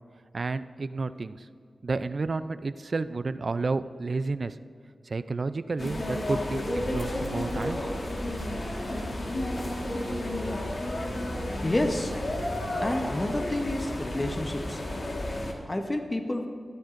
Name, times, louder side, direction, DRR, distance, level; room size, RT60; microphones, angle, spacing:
voice 1, 0.3-1.5 1.8-4.6 5.1-7.8, right 3 dB, 55° right, 13 dB, 0.4 m, -31 dB
sound 1, 5.8-15.5, left 1 dB, 50° left, 1.5 m, -32 dB
voice 2, 11.6-12.1 12.8-14.8 15.6-16.5, left 1 dB, 25° left, 5 dB, 0.8 m, -29 dB
13.0 x 12.5 x 2.5 m, 2.3 s
wide cardioid pair, 70°, 0 cm